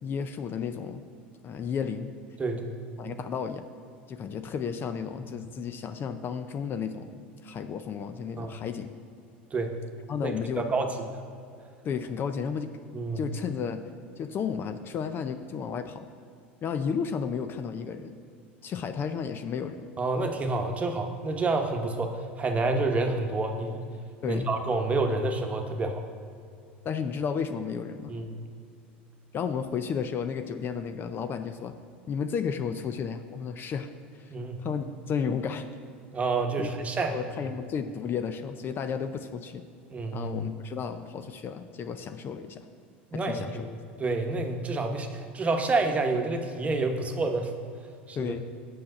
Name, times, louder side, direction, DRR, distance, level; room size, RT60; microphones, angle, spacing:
voice 1, 0.0-1.0 1.4-2.1 3.0-3.6 4.1-8.9 10.1-10.6 11.8-12.7 13.2-13.8 14.2-16.1 16.6-18.2 18.6-19.9 24.2-24.5 26.8-28.2 29.3-31.8 32.1-35.7 36.6-36.7 37.1-39.6 40.1-42.7 43.1-43.7 48.2-48.4, left 6 dB, 35° left, 9 dB, 0.5 m, -33 dB
voice 2, 2.4-3.1 5.1-5.2 8.4-8.6 9.5-9.7 10.2-11.0 12.9-13.2 20.0-23.8 24.3-26.0 28.1-28.3 34.3-34.6 36.1-37.2 39.9-40.3 43.1-47.5 48.1-48.3, right 3 dB, 25° right, 4 dB, 1.1 m, -29 dB
7.6 x 5.8 x 6.5 m, 2.4 s
hypercardioid pair, 90°, 6 cm